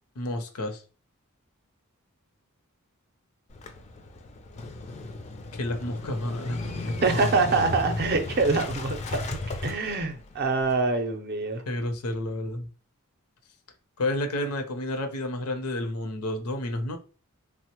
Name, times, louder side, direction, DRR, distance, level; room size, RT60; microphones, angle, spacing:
voice 1, 0.2-0.8 5.5-7.2 11.7-12.7 14.0-17.0, left 1 dB, 80° left, 0.6 m, -30 dB
Motorcycle / Engine starting, 3.5-10.7, left 2 dB, 30° left, 0.3 m, -35 dB
voice 2, 7.0-11.6, right 3 dB, 45° right, 0.5 m, -25 dB
3.4 x 2.0 x 2.9 m
head